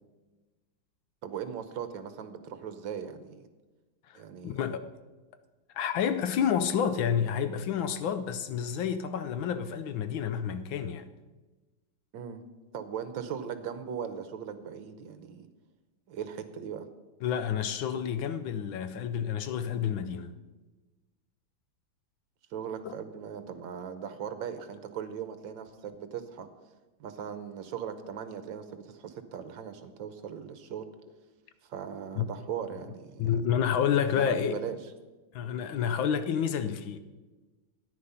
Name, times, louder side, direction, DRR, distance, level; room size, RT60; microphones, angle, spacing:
voice 1, 1.2-3.4 4.1-4.6 12.1-12.4 12.7-15.5 16.1-16.9 22.5-26.5 27.0-30.8 31.7-33.4 34.2-34.8, right 8 dB, 65° right, 1.4 m, -39 dB
voice 2, 4.1-4.9 5.7-11.1 17.2-20.3 22.8-22.9 32.2-32.3 33.2-34.6 35.3-37.0, left 8 dB, 70° left, 1.3 m, -29 dB
13.5 x 9.7 x 5.6 m
omnidirectional pair, 2.4 m